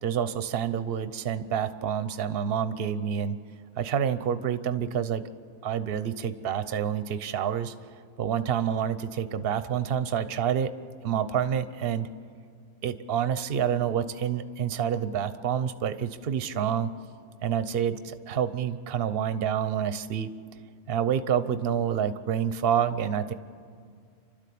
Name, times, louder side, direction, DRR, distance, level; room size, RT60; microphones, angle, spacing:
voice 1, 0.0-3.4 3.8-5.2 5.6-7.7 8.2-10.7 11.0-12.1 12.8-16.9 17.4-20.3 20.9-23.3, right 8 dB, 50° right, 12 dB, 0.9 m, -28 dB
28.5 x 12.5 x 8.5 m, 2.2 s
omnidirectional pair, 1.5 m